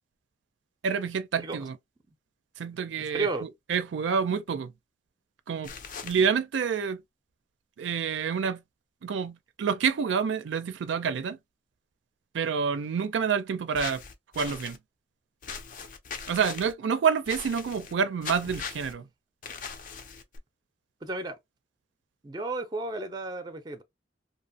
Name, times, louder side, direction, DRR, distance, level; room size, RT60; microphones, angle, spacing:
voice 1, 0.8-1.8 2.6-4.7 5.5-5.7 6.0-7.0 7.8-8.6 9.0-11.4 12.3-14.0 14.4-14.8 16.3-19.1, right 6 dB, 90° right, 0.4 m, -28 dB
voice 2, 3.1-3.5 21.0-21.4 22.2-23.8, right 3 dB, 25° right, 0.4 m, -32 dB
sound 1, 5.6-6.2 13.7-14.8 15.4-16.7 17.3-17.9 18.2-18.9 19.4-20.4, left 5 dB, 45° left, 0.4 m, -39 dB
2.7 x 2.0 x 2.7 m
head